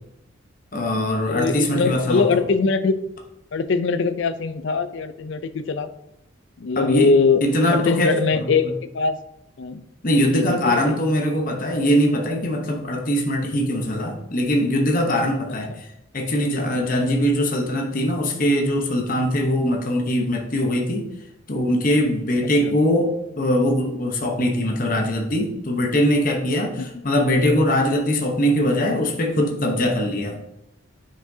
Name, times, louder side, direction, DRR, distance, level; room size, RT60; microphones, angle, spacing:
voice 1, 0.7-2.2 6.8-7.1 7.4-8.5 10.0-15.9 16.1-21.1 21.5-30.4, equal, 40° left, 1 dB, 0.9 m, -21 dB
voice 2, 1.3-3.0 3.5-5.9 6.6-7.4 7.7-9.2 9.6-9.8 10.3-11.0 22.4-22.8 26.8-26.9, left 4 dB, 60° left, 11 dB, 0.4 m, -22 dB
7.6 x 5.7 x 2.7 m, 0.85 s
head